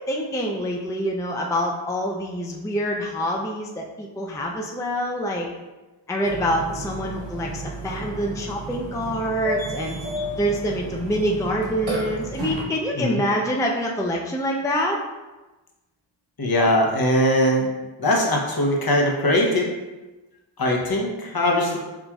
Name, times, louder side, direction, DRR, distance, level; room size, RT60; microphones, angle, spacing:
voice 1, 0.0-5.5 6.1-10.0 10.4-15.0, equal, 5° left, -1 dB, 0.4 m, -26 dB
Burping eructation, 6.3-12.6, right 1 dB, 85° right, 0.9 m, -32 dB
voice 2, 16.4-17.7 18.0-19.7 20.6-21.8, left 1 dB, 50° left, -1 dB, 0.9 m, -21 dB
5.9 x 2.5 x 2.3 m, 1.1 s
wide cardioid pair, 50°, 46 cm